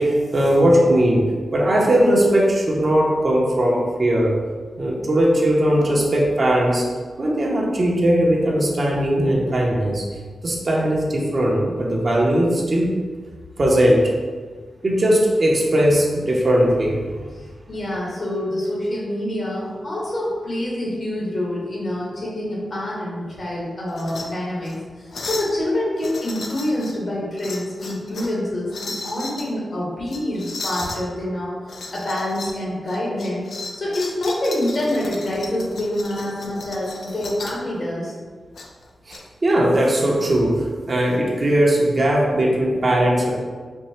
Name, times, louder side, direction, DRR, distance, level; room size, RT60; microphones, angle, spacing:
voice 1, 0.0-4.4 4.8-6.8 7.2-10.0 10.4-12.9 13.6-14.1 14.8-17.3 39.1-43.3, right 1 dB, 50° right, -3 dB, 0.9 m, -19 dB
voice 2, 17.7-33.5 33.8-38.1, left 1 dB, 55° left, -5 dB, 1.5 m, -26 dB
sound 1, 23.9-24.3 24.6-24.8 25.1-25.5 26.0-27.0 27.4-28.4 28.7-29.5 30.1-31.0 31.7-32.6 32.9-37.6 38.6-39.2, left 3 dB, 80° left, 0.5 m, -35 dB
4.4 x 2.2 x 4.4 m, 1.5 s
cardioid pair, 70°, 0 cm